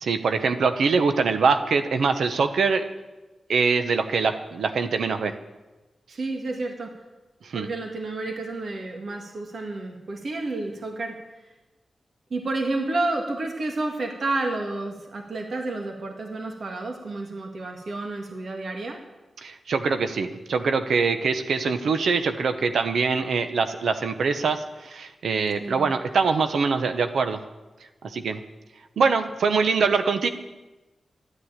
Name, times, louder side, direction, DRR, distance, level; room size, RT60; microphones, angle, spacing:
voice 1, 0.0-2.9 3.5-5.3 7.4-7.7 19.4-27.4 28.0-28.4 29.0-30.3, right 5 dB, 85° right, 8 dB, 1.0 m, -23 dB
voice 2, 6.1-6.9 7.5-11.2 12.3-19.0 25.6-25.9, right 2 dB, 60° right, 2 dB, 2.0 m, -30 dB
13.0 x 10.0 x 9.0 m, 1.1 s
wide cardioid pair, 110°, 0 cm